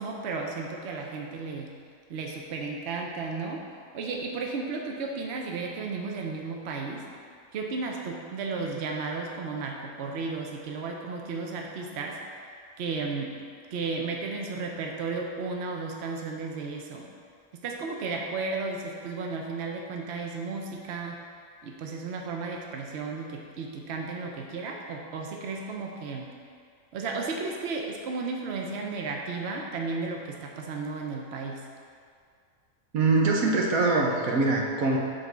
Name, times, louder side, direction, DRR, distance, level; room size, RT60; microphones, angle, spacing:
voice 1, 0.0-1.7 2.1-3.6 3.9-7.0 7.5-12.2 12.8-13.3 13.7-17.1 17.6-21.2 21.6-26.3 26.9-31.6, right 4 dB, 60° right, 1 dB, 0.9 m, -34 dB
voice 2, 32.9-35.0, right 3 dB, 85° right, -1 dB, 1.3 m, -23 dB
8.1 x 4.0 x 4.6 m, 2.1 s
omnidirectional pair, 1.4 m